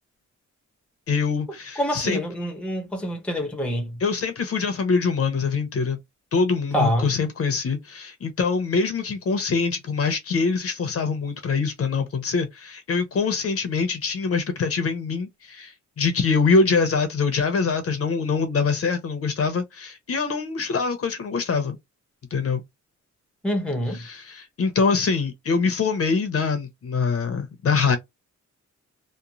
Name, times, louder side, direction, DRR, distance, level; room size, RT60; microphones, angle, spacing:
voice 1, 1.1-2.2 4.0-6.0 6.3-21.8 22.3-22.6 23.9-28.0, left 4 dB, 50° left, 0.7 m, -24 dB
voice 2, 1.8-4.0 6.7-7.1 23.4-24.0, equal, 5° left, 0.7 m, -26 dB
3.0 x 2.1 x 2.4 m
wide cardioid pair, 135°, 30 cm